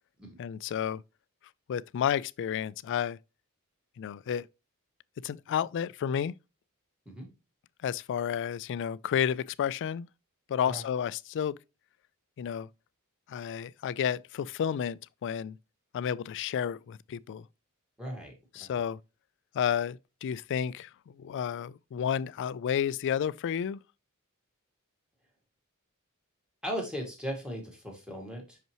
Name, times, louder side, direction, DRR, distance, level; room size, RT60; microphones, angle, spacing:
voice 1, 0.4-1.0 1.7-3.2 4.0-4.5 5.2-6.3 7.8-10.1 10.5-11.6 12.4-12.7 13.3-15.6 15.9-17.4 18.6-19.0 19.5-23.8, left 8 dB, 55° left, 0.3 m, -31 dB
voice 2, 18.0-18.8 26.6-28.6, equal, 5° right, 2.0 m, -38 dB
5.8 x 5.4 x 2.9 m
head